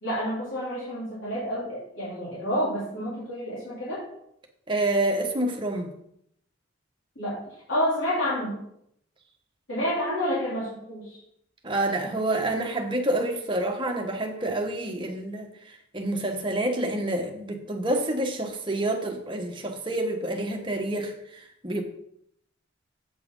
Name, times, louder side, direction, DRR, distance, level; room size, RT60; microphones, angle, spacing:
voice 1, 0.0-4.0 7.1-7.4 7.7-8.6 9.7-11.2, equal, 70° left, -7 dB, 3.2 m, -29 dB
voice 2, 4.7-5.9 11.6-21.8, right 1 dB, 25° right, 2 dB, 1.2 m, -28 dB
8.3 x 5.8 x 5.4 m, 0.74 s
head